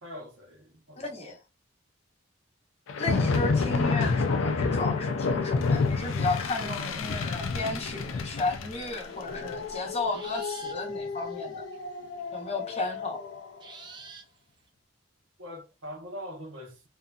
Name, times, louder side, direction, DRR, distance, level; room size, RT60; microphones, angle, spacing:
voice 1, 0.0-1.0 15.4-16.9, equal, 75° right, 0.9 m, -42 dB
voice 2, 1.0-1.4 3.0-11.6 12.3-13.2, left 3 dB, 30° left, 0.7 m, -33 dB
sound 1, 2.9-13.5, left 4 dB, 90° left, 0.4 m, -29 dB
sound 2, 9.1-11.8 12.2-12.3 12.6-12.7 13.6-14.6, right 4 dB, 20° right, 0.4 m, -49 dB
2.6 x 2.5 x 2.2 m
head